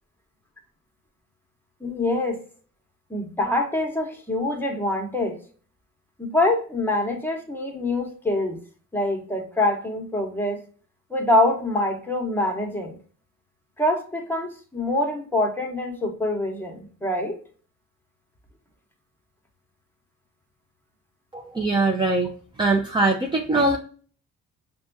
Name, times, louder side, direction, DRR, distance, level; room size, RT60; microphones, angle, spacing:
voice 1, 1.8-2.4 3.1-5.4 6.2-8.6 8.9-10.6 11.1-13.0 13.8-17.4, left 1 dB, 5° left, 2 dB, 1.1 m, -25 dB
voice 2, 21.3-22.3 22.6-23.8, right 2 dB, 15° right, 1 dB, 0.5 m, -22 dB
5.7 x 2.3 x 2.7 m, 0.42 s
cardioid pair, 90°, 30 cm